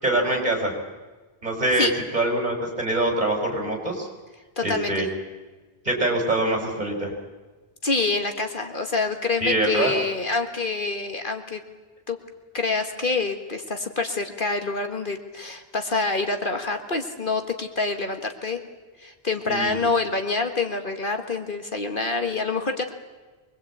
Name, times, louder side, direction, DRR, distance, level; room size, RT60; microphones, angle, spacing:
voice 1, 0.0-0.7 1.4-1.9 2.1-4.1 4.6-5.1 5.9-7.1 9.4-9.9 19.5-19.8, right 1 dB, 40° right, 1 dB, 5.4 m, -24 dB
voice 2, 4.6-5.1 7.8-11.6 12.1-12.2 12.5-18.6 19.0-22.9, left 3 dB, 50° left, 6 dB, 1.8 m, -26 dB
24.5 x 20.5 x 8.6 m, 1.3 s
omnidirectional pair, 1.1 m